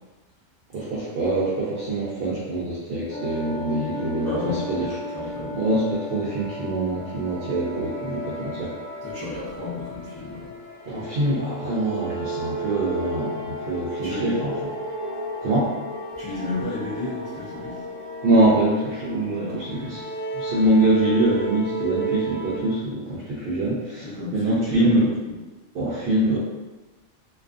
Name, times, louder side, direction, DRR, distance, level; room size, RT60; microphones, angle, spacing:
voice 1, 0.7-4.9 5.5-8.7 10.9-14.7 15.4-15.7 18.2-20.0 20.3-24.1 24.3-25.1 25.7-26.4, right 1 dB, 65° right, -7 dB, 0.6 m, -24 dB
sound 1, 3.1-22.6, right 1 dB, 55° left, 0.8 m, -33 dB
voice 2, 4.2-5.6 9.0-10.5 14.0-14.4 16.2-17.8 19.3-19.7 24.0-24.9, left 2 dB, 30° left, -11 dB, 0.4 m, -32 dB
2.4 x 2.3 x 2.4 m, 1.2 s
omnidirectional pair, 1.3 m